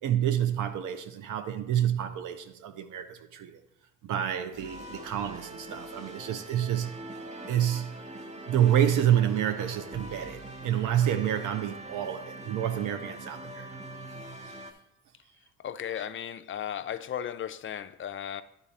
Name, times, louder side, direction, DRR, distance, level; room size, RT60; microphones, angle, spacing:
voice 1, 0.0-3.6 4.0-7.0 7.5-8.0 8.5-13.7, right 10 dB, 90° right, 0.7 m, -28 dB
sound 1, 4.5-14.7, right 1 dB, 25° right, 1.0 m, -43 dB
voice 2, 15.6-18.4, left 9 dB, 40° left, 0.4 m, -35 dB
10.0 x 4.1 x 4.1 m
cardioid pair, 90°, 30 cm